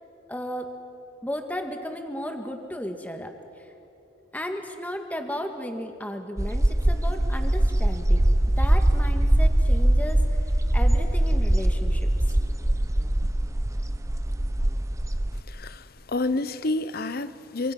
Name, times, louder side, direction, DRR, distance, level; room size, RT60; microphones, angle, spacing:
voice 1, 0.3-0.7 1.2-3.3 4.3-8.3 8.5-10.2 10.7-12.1 13.2-13.3, equal, 10° left, 1.7 m, -34 dB
sound 1, 6.4-15.4, right 1 dB, 15° right, 0.6 m, -22 dB
voice 2, 15.5-17.7, left 2 dB, 50° left, 0.8 m, -29 dB
26.0 x 24.5 x 6.0 m
head